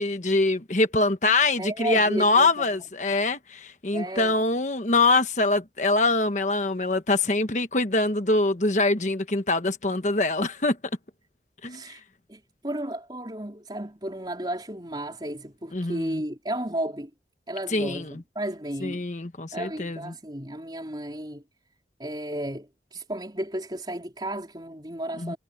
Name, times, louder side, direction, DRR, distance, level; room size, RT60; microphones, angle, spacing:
voice 1, 0.0-10.8 11.6-11.8 15.7-16.2 17.7-18.2 18.8-20.1 25.2-25.3, left 2 dB, 45° left, 1.3 m, -24 dB
voice 2, 1.6-2.8 3.9-4.4 11.6-12.0 12.3-17.1 17.5-19.0 19.5-21.4 22.0-25.4, right 1 dB, 25° right, 4.4 m, -33 dB
head